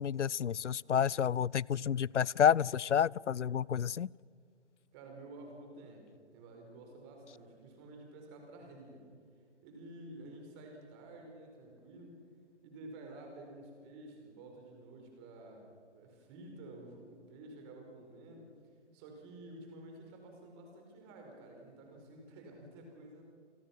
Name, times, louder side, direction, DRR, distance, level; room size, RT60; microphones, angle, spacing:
voice 1, 0.0-4.1, left 8 dB, 80° left, 27 dB, 0.5 m, -29 dB
voice 2, 4.9-6.1 6.3-9.1 9.6-12.2 12.6-18.5 18.9-23.2, right 2 dB, 20° right, 2 dB, 4.7 m, -51 dB
29.0 x 18.5 x 6.0 m, 2.2 s
figure-of-eight pair, 145°, 36 cm